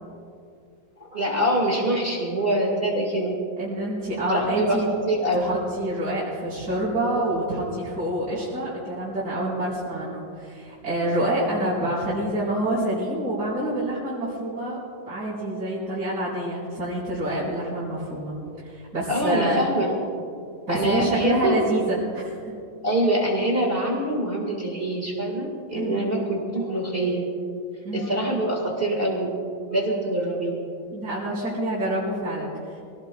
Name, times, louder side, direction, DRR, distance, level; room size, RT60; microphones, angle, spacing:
voice 1, 1.0-3.4 4.3-5.5 19.1-20.0 20.7-21.6 22.8-27.2 27.9-29.3 29.7-30.6, right 1 dB, 30° right, -1 dB, 1.9 m, -24 dB
voice 2, 3.6-4.9 5.3-14.8 15.0-18.4 18.6-19.6 20.7-22.5 25.7-26.1 27.8-28.1 30.9-32.8, right 1 dB, 55° right, -11 dB, 4.6 m, -27 dB
24.5 x 18.0 x 2.3 m, 2.4 s
omnidirectional pair, 2.1 m